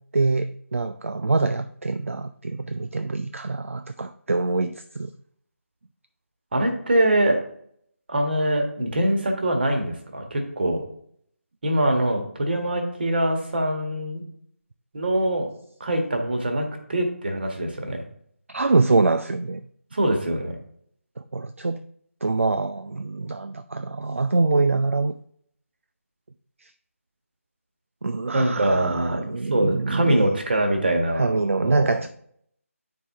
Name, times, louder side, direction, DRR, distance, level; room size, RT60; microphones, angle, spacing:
voice 1, 0.1-5.1 18.5-19.6 21.2-21.8 22.2-25.1 26.6-26.7 28.0-30.3 31.1-32.1, right 3 dB, 60° right, 0.4 m, -24 dB
voice 2, 6.5-7.4 8.1-10.8 11.6-14.2 14.9-15.5 15.8-18.0 19.9-20.6 28.3-32.0, right 1 dB, 40° right, 1.5 m, -23 dB
9.0 x 4.8 x 3.6 m
figure-of-eight pair, 155°, 8 cm